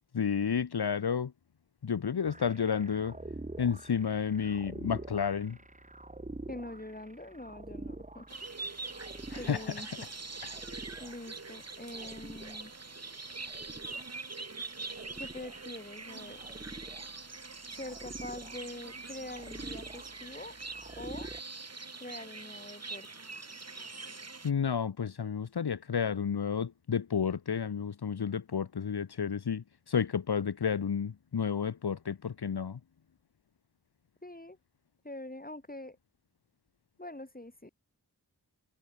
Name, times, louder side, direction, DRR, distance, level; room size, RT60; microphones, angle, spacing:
voice 1, 0.1-1.3 1.8-3.2 3.6-5.6 9.3-9.7 24.4-32.8, left 7 dB, 75° left, 0.8 m, -31 dB
sound 1, 2.3-21.4, right 2 dB, 20° right, 1.1 m, -47 dB
voice 2, 6.5-8.3 9.3-10.1 11.0-12.7 15.2-16.4 17.8-20.5 21.0-21.3 22.0-23.1 34.2-34.6 35.0-36.0 37.0-37.7, left 1 dB, 20° left, 3.1 m, -44 dB
sound 2, 8.3-24.5, right 3 dB, 40° right, 1.3 m, -44 dB
wide cardioid pair, 45°, 39 cm